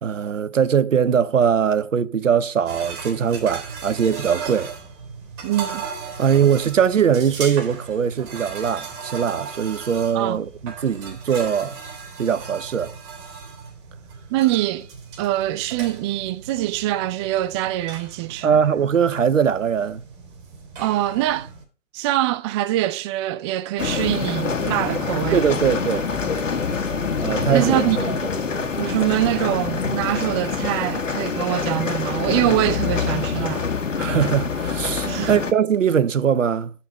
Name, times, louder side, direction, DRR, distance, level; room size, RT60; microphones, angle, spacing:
voice 1, 0.0-4.7 6.2-11.8 12.2-12.9 18.4-20.0 25.3-26.1 27.2-28.2 34.0-36.7, right 7 dB, 85° right, 1.0 m, -21 dB
sound 1, 2.7-21.6, right 5 dB, 40° right, 4.0 m, -37 dB
voice 2, 5.4-5.9 10.1-10.4 14.3-14.9 15.2-18.6 20.8-21.5 21.9-25.4 27.5-28.1 28.8-33.7 35.0-35.4, right 15 dB, 25° right, 0.4 m, -24 dB
sound 2, 23.8-35.5, left 5 dB, 85° left, 1.8 m, -25 dB
10.5 x 5.8 x 5.5 m
hypercardioid pair, 130°, 37 cm